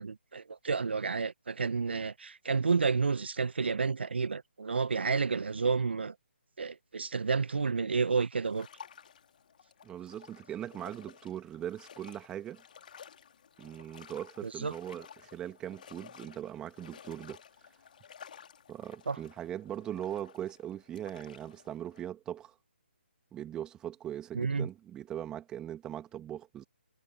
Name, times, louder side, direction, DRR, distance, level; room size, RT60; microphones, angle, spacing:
voice 1, 0.0-6.1 6.6-8.7 14.4-14.7 19.1-19.2 24.3-24.7, right 5 dB, 65° right, 1.4 m, -30 dB
sound 1, 8.4-22.0, left 8 dB, 50° left, 2.5 m, -54 dB
voice 2, 9.8-12.6 13.6-17.4 18.7-22.5 23.3-26.6, right 11 dB, 10° right, 1.9 m, -40 dB
figure-of-eight pair, 150°, 6 cm